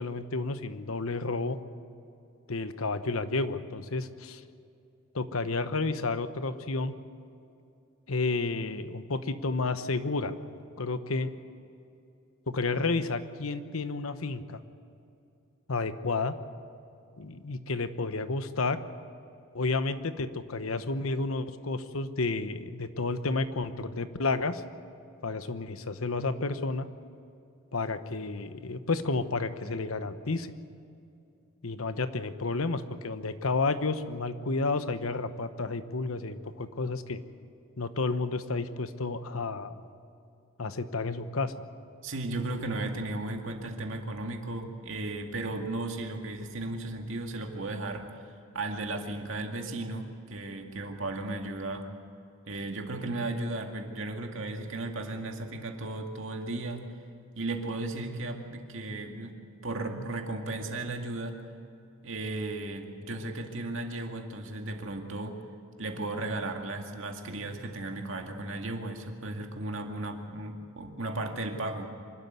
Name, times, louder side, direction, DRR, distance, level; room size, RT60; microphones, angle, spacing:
voice 1, 0.0-1.6 2.5-4.4 5.1-6.9 8.1-10.4 10.8-11.3 12.5-14.6 15.7-16.3 17.2-18.8 19.5-24.6 25.2-26.9 27.7-30.5 31.6-37.2 37.8-39.8 40.6-41.5, left 3 dB, 85° left, 11 dB, 1.1 m, -31 dB
voice 2, 42.0-51.9 52.5-56.8 57.4-59.4 59.6-61.4 62.0-65.4 65.8-71.9, right 2 dB, 65° right, 3 dB, 2.2 m, -35 dB
26.0 x 12.5 x 9.4 m, 2.6 s
head